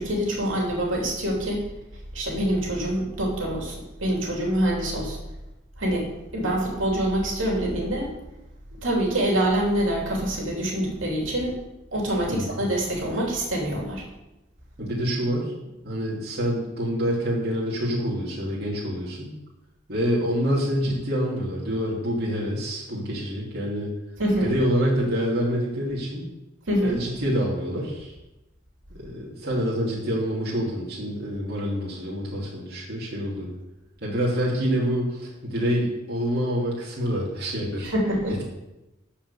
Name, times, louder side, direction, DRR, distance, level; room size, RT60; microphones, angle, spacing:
voice 1, 0.0-1.6 2.1-5.2 5.8-6.1 6.3-8.1 8.8-11.5 11.9-14.0 24.2-24.5 26.7-27.0 37.9-38.4, right 1 dB, 75° right, -2 dB, 3.1 m, -25 dB
voice 2, 12.3-12.6 14.8-15.5 15.8-19.3 19.9-23.9 24.4-26.2 26.8-28.1 28.9-33.5 34.0-37.9, equal, 50° right, -5 dB, 2.7 m, -26 dB
13.5 x 5.0 x 6.9 m, 0.98 s
head